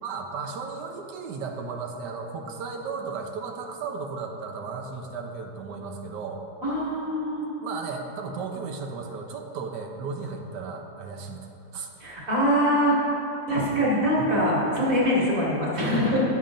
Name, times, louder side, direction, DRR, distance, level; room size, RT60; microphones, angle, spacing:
voice 1, 0.0-6.4 7.6-11.5 11.7-11.9 14.2-14.3, right 4 dB, 85° right, 3 dB, 1.4 m, -35 dB
voice 2, 6.6-7.5 12.0-13.0 13.5-16.2, equal, 50° right, -7 dB, 2.7 m, -23 dB
15.0 x 7.2 x 2.6 m, 2.9 s
omnidirectional pair, 1.8 m